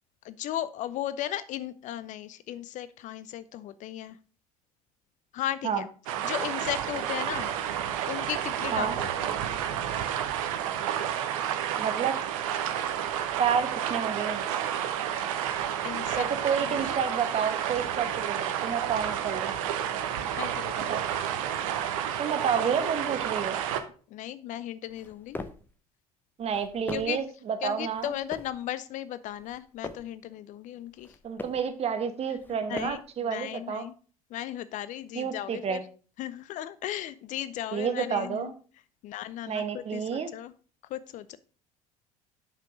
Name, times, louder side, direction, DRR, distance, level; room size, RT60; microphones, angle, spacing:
voice 1, 0.2-4.2 5.3-5.9 6.2-7.5 8.1-9.4 15.8-16.3 16.6-16.9 20.4-21.0 24.1-25.4 26.9-27.2 27.6-31.2 32.3-33.9 34.3-35.8 36.2-38.5 39.0-40.5 40.9-41.4, left 12 dB, 40° left, 15 dB, 0.5 m, -36 dB
sound 1, 6.1-23.8, right 10 dB, 60° right, 0.9 m, -30 dB
voice 2, 11.8-12.2 13.4-14.4 16.1-19.5 20.9-21.0 22.2-23.6 26.4-28.1 31.2-33.8 35.1-35.8 37.7-38.5 39.5-40.3, right 7 dB, 35° right, 9 dB, 1.2 m, -30 dB
sound 2, 24.9-25.7 26.4-27.3 27.9-28.6 29.3-30.2 30.9-31.7 32.4-33.2, left 2 dB, 10° left, 0.8 m, -42 dB
7.3 x 5.9 x 4.9 m, 0.39 s
figure-of-eight pair, 65°, 19 cm